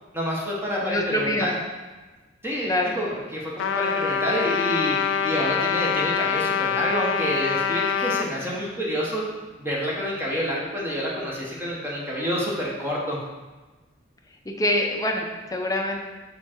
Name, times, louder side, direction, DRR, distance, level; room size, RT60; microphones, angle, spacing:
voice 1, 0.1-1.6 2.4-9.2 9.6-13.2, equal, 10° right, -5 dB, 1.3 m, -28 dB
voice 2, 0.8-1.5 2.6-2.9 14.6-16.0, left 1 dB, 20° left, 2 dB, 0.7 m, -25 dB
Trumpet, 3.6-8.3, left 6 dB, 70° left, 0.3 m, -25 dB
7.1 x 3.8 x 4.5 m, 1.2 s
head